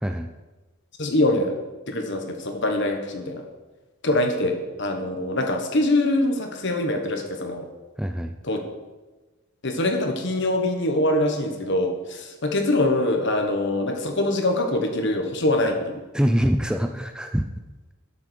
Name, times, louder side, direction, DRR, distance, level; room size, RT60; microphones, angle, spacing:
voice 1, 1.0-1.5 1.9-3.4 4.0-7.6 8.4-8.6 9.6-16.0, left 1 dB, 55° left, 4 dB, 1.4 m, -24 dB
voice 2, 8.0-8.3 16.1-17.5, equal, 5° right, 6 dB, 0.4 m, -24 dB
12.0 x 7.1 x 4.6 m, 1.2 s
head